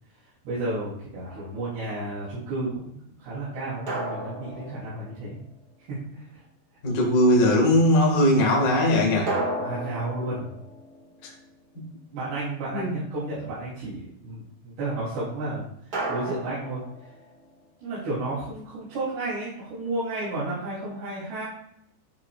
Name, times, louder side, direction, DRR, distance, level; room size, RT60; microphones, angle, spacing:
voice 1, 0.5-5.4 5.9-6.4 9.6-10.5 12.1-15.7 16.1-16.8 17.8-21.5, right 2 dB, 90° right, -11 dB, 5.1 m, -32 dB
sound 1, 1.2-1.8 3.9-5.7 9.3-11.9 15.9-17.6, right 1 dB, 50° right, 1.1 m, -34 dB
voice 2, 6.8-9.4 11.2-11.3 11.7-11.9 12.7-12.9, left 1 dB, 70° left, -2 dB, 0.8 m, -20 dB
12.0 x 5.2 x 2.4 m, 0.69 s
omnidirectional pair, 4.8 m